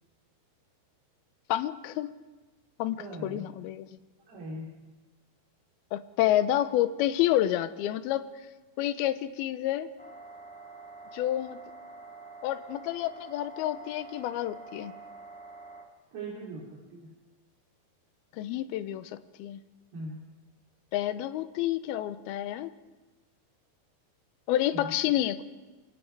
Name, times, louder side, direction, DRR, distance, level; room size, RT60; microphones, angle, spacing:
voice 1, 1.5-2.1 2.8-3.9 5.9-8.3 8.8-9.9 11.1-11.6 12.4-14.9 18.3-19.6 20.9-22.7 24.5-25.4, left 13 dB, 75° left, 12 dB, 2.6 m, -29 dB
voice 2, 2.9-3.5 4.3-4.7 16.1-17.1 19.9-20.2 24.7-24.9, right 1 dB, 65° right, -5 dB, 5.5 m, -40 dB
sound 1, 10.0-15.8, right 3 dB, 5° left, 0.7 m, -47 dB
27.5 x 26.0 x 4.7 m, 1.2 s
omnidirectional pair, 4.9 m